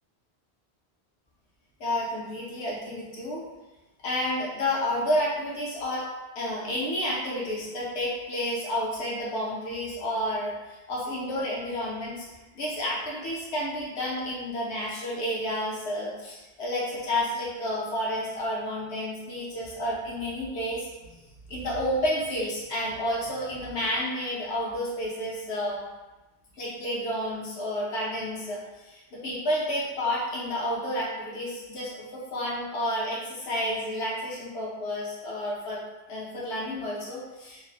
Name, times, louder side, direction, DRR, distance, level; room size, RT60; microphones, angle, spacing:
voice 1, 1.8-3.4 4.0-6.1 6.4-12.3 12.5-21.2 21.5-25.8 26.6-35.8 36.1-37.6, left 1 dB, 80° left, -5 dB, 0.9 m, -30 dB
2.6 x 2.4 x 2.3 m, 1.1 s
omnidirectional pair, 1.1 m